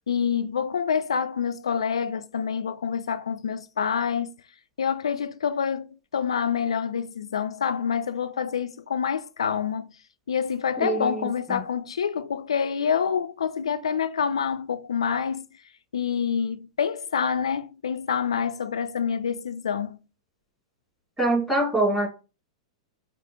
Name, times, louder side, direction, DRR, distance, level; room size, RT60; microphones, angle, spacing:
voice 1, 0.1-4.3 4.8-9.9 10.3-15.5 15.9-20.0, left 7 dB, 70° left, 0.4 m, -27 dB
voice 2, 10.8-11.6 21.2-22.1, right 2 dB, 5° right, 2.0 m, -25 dB
4.8 x 2.2 x 3.8 m
figure-of-eight pair, 100°, 3 cm